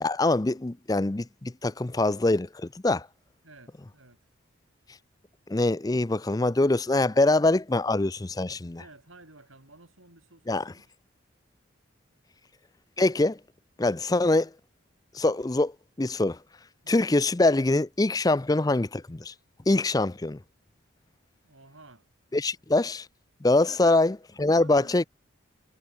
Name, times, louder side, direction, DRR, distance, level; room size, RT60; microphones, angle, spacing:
voice 1, 0.0-3.1 5.5-8.8 10.5-10.6 13.0-13.4 13.8-14.5 15.1-15.7 16.0-16.4 16.9-19.3 19.7-20.4 22.3-23.1 23.4-25.0, left 2 dB, 20° left, 0.5 m, -24 dB
voice 2, 3.4-4.2 8.8-10.9 13.8-14.0 16.8-17.0 21.4-22.1 23.6-24.0 24.4-25.0, right 2 dB, 75° right, 6.9 m, -52 dB
head